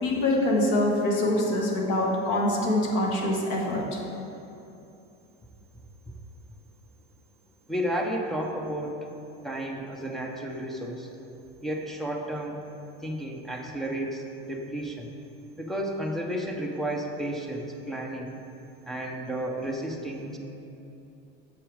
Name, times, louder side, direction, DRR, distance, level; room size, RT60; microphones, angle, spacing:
voice 1, 0.0-4.0, left 1 dB, 60° left, -1 dB, 1.5 m, -25 dB
voice 2, 7.7-9.1 9.4-11.1 11.6-12.6 13.0-15.1 15.6-18.4 18.9-20.4, right 1 dB, ahead, 0 dB, 0.3 m, -32 dB
7.0 x 6.0 x 4.8 m, 2.8 s
cardioid pair, 175°, 29 cm